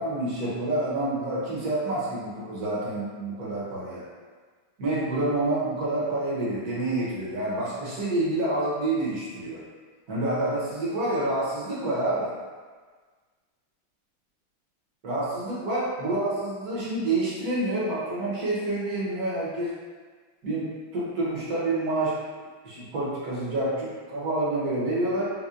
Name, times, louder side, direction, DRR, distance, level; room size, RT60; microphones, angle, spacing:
voice 1, 0.0-4.0 4.8-9.6 10.1-12.3 15.0-19.7 20.4-22.1 22.6-25.3, right 2 dB, 55° right, -7 dB, 1.2 m, -28 dB
5.4 x 2.1 x 2.4 m, 1.5 s
omnidirectional pair, 2.2 m